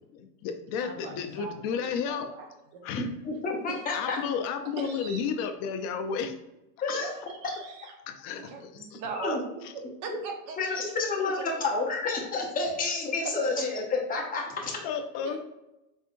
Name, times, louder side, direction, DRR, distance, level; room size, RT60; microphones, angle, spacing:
voice 1, 0.2-2.3 2.8-3.1 3.9-6.3 8.1-9.4 14.8-15.4, left 6 dB, 35° left, 6 dB, 0.4 m, -32 dB
voice 2, 0.8-2.8 3.7-3.8 4.8-5.2 6.9-7.9 8.3-9.4 9.7-10.6 11.4-11.6 13.2-13.6 15.2-15.4, right 5 dB, 40° right, 3 dB, 0.9 m, -40 dB
voice 3, 3.0-4.2 6.8-7.1 9.2-9.4 10.6-13.8 14.1-14.8, left 3 dB, 15° left, -1 dB, 0.9 m, -30 dB
4.3 x 3.5 x 2.5 m, 0.93 s
supercardioid pair, 125°, 48 cm